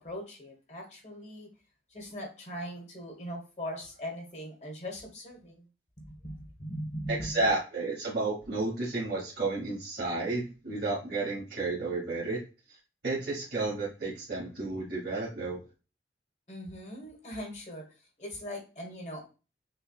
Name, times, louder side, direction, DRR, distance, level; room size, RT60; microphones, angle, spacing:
voice 1, 0.0-1.5 1.9-5.6 6.0-7.4 16.5-17.8 18.2-19.3, equal, 40° left, 1 dB, 1.2 m, -40 dB
voice 2, 7.1-12.4 13.0-15.6, right 3 dB, 65° right, -5 dB, 1.4 m, -32 dB
5.5 x 2.2 x 2.3 m, 0.32 s
head